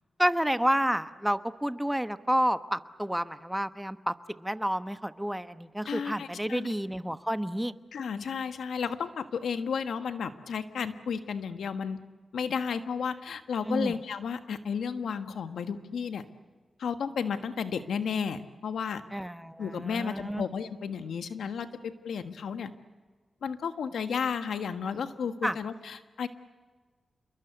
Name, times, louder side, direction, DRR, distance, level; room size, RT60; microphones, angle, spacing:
voice 1, 0.2-7.7 13.7-14.0 19.1-20.5 25.4-25.6, equal, 5° right, 11 dB, 1.1 m, -30 dB
voice 2, 5.8-6.7 7.9-12.0 12.3-16.2 16.8-19.0 19.6-22.7 23.4-26.3, left 6 dB, 90° left, 9 dB, 1.5 m, -33 dB
28.0 x 22.5 x 8.1 m, 1.4 s
cardioid pair, 70°, 0 cm